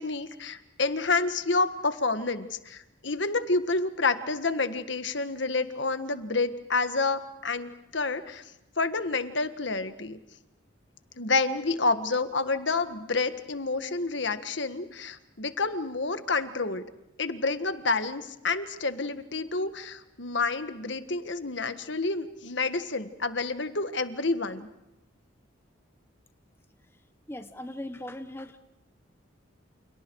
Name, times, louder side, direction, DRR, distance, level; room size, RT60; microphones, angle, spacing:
voice 1, 0.0-8.4 8.8-10.2 11.2-16.8 17.2-24.7, left 3 dB, 65° left, 10 dB, 1.6 m, -29 dB
voice 2, 27.3-28.6, left 1 dB, 10° left, 8 dB, 1.0 m, -39 dB
29.5 x 29.0 x 4.7 m, 0.89 s
head